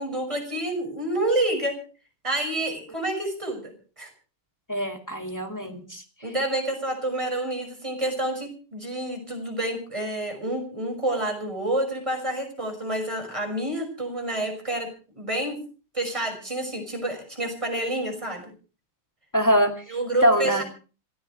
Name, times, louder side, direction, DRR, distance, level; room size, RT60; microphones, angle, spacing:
voice 1, 0.0-1.8 2.2-4.1 6.2-14.9 15.1-15.6 15.9-18.5 19.9-20.6, right 1 dB, 15° right, 3 dB, 5.8 m, -28 dB
voice 2, 4.7-6.0 19.3-19.8 20.2-20.6, equal, 10° left, 3 dB, 2.1 m, -23 dB
26.5 x 15.0 x 3.3 m, 0.37 s
omnidirectional pair, 2.4 m